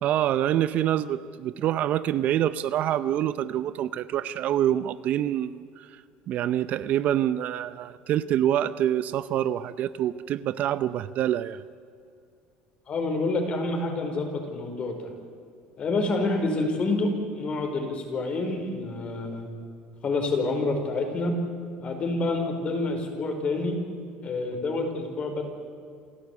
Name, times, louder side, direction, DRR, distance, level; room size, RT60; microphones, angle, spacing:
voice 1, 0.0-5.9 6.3-11.6, right 11 dB, 50° right, 15 dB, 0.7 m, -26 dB
voice 2, 12.9-15.1 15.8-19.5 20.0-21.3 21.8-23.8 24.2-25.4, left 2 dB, 35° left, 4 dB, 4.7 m, -28 dB
28.0 x 13.5 x 8.4 m, 2.3 s
supercardioid pair, 115°, 3 cm